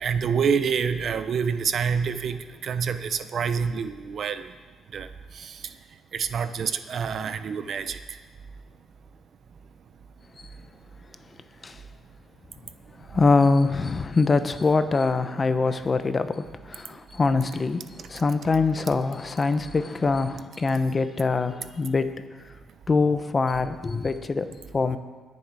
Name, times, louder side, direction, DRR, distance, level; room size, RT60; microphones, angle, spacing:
voice 1, 0.0-4.5 4.9-5.1 5.4-5.5 6.1-8.0, right 6 dB, 55° right, 11 dB, 0.7 m, -27 dB
voice 2, 13.1-22.1 22.9-25.0, left 4 dB, 30° left, 11 dB, 0.8 m, -24 dB
21.0 x 7.1 x 4.8 m, 1.4 s
cardioid pair, 90°, 0 cm